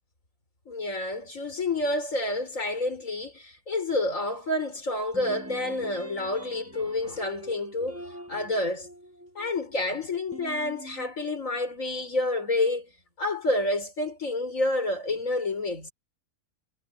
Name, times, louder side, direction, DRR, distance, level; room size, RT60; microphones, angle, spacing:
voice 1, 0.7-8.9 9.4-12.9 13.2-15.9, left 2 dB, 55° left, 5.2 m, -29 dB
sound 1, 5.1-11.1, equal, 10° right, 6.5 m, -44 dB
omnidirectional pair, 1.7 m